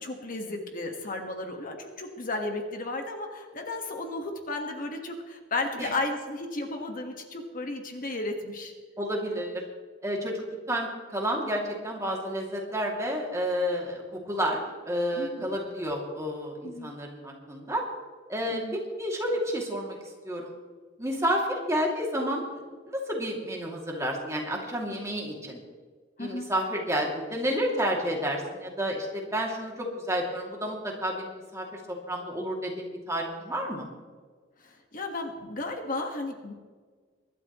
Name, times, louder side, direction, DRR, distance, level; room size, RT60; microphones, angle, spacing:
voice 1, 0.0-8.7 15.2-15.6 16.6-16.9 18.5-18.8 26.2-26.5 34.6-36.5, left 2 dB, 45° left, 3 dB, 1.6 m, -34 dB
voice 2, 9.0-9.6 10.0-10.4 10.7-17.8 18.3-20.0 20.2-20.5 21.0-22.6 22.9-25.6 26.2-33.9, equal, 15° right, -1 dB, 2.5 m, -30 dB
23.5 x 12.0 x 3.1 m, 1.5 s
head